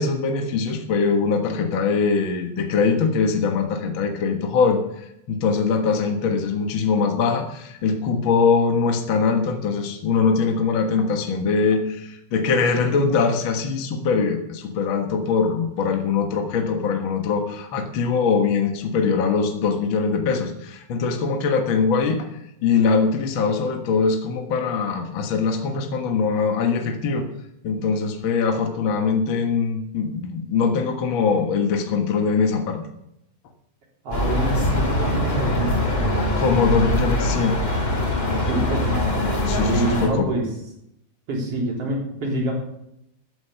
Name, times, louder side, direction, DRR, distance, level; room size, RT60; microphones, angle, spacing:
voice 1, 0.0-22.3 22.6-27.2 27.6-32.8 36.4-37.6 39.5-40.3, left 5 dB, 70° left, 4 dB, 1.1 m, -22 dB
voice 2, 34.0-36.3 38.2-39.2 39.6-40.5 41.3-42.5, right 2 dB, 40° right, -2 dB, 4.4 m, -27 dB
sound 1, 34.1-40.1, left 1 dB, 15° left, 2.4 m, -22 dB
14.5 x 8.3 x 6.9 m, 0.80 s
omnidirectional pair, 4.6 m